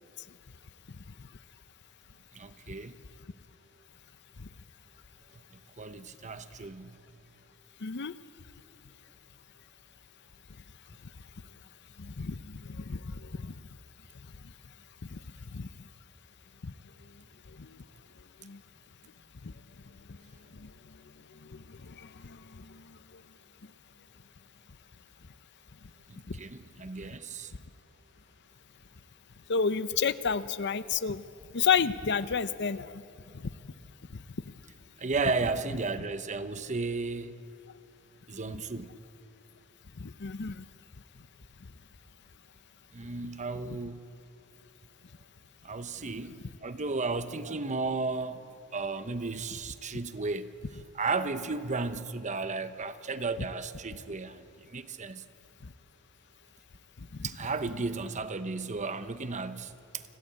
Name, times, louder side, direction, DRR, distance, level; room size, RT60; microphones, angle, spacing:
voice 1, 2.3-2.9 5.8-6.9 26.1-27.5 35.0-37.5 38.3-38.9 42.9-44.0 45.6-46.4 46.6-48.4 48.7-50.5 50.9-55.2 57.2-60.0, right 3 dB, 35° right, 0.9 m, -34 dB
voice 2, 7.8-8.1 12.0-13.5 15.1-15.2 15.5-15.7 16.6-16.7 17.6-17.7 18.4-18.6 19.4-19.5 20.6-20.7 21.4-22.8 26.3-26.4 29.5-31.2 31.5-33.0 33.3-33.5 40.0-40.6 43.7-43.8 57.0-57.3, left 6 dB, 50° left, 0.7 m, -31 dB
29.0 x 21.5 x 8.7 m
head